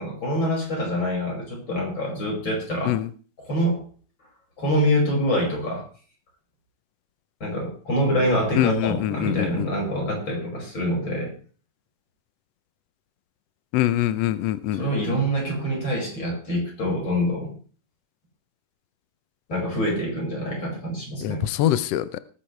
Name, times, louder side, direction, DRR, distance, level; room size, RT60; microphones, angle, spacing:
voice 1, 0.0-3.0 3.4-3.8 4.6-5.9 7.4-11.3 14.7-17.5 19.5-21.4, equal, 35° left, -1 dB, 6.3 m, -25 dB
voice 2, 8.5-9.7 13.7-14.8 21.2-22.2, left 13 dB, 85° left, 14 dB, 1.4 m, -24 dB
19.5 x 10.0 x 3.3 m, 0.40 s
omnidirectional pair, 3.7 m